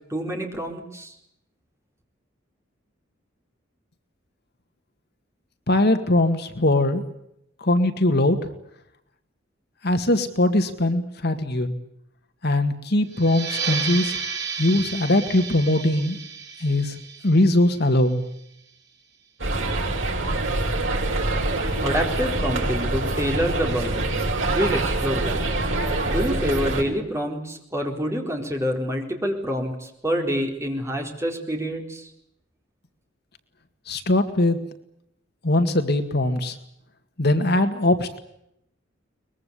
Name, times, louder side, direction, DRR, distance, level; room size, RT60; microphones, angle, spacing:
voice 1, 0.1-1.1 21.8-25.4 26.1-32.1, equal, 15° right, 2 dB, 4.2 m, -27 dB
voice 2, 5.7-7.0 7.6-8.4 9.8-11.7 12.4-14.2 14.6-16.2 16.6-17.0 17.2-18.2 33.9-34.6 35.4-36.6 37.2-38.2, left 1 dB, 55° left, 7 dB, 2.0 m, -21 dB
sound 1, 13.1-18.4, right 5 dB, 60° right, 6.6 m, -32 dB
sound 2, 19.4-26.8, right 2 dB, 85° right, 5.9 m, -25 dB
23.0 x 21.5 x 8.4 m, 0.78 s
head